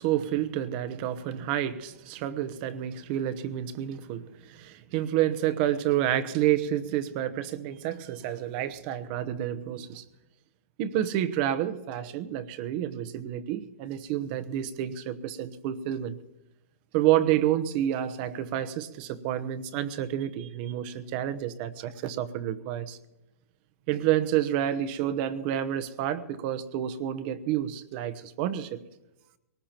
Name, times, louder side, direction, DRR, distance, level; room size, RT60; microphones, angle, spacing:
voice 1, 0.0-10.0 10.8-16.2 16.9-23.0 23.9-28.8, right 11 dB, 40° right, 12 dB, 1.0 m, -29 dB
21.5 x 19.0 x 3.0 m, 0.93 s
hypercardioid pair, 130°, 8 cm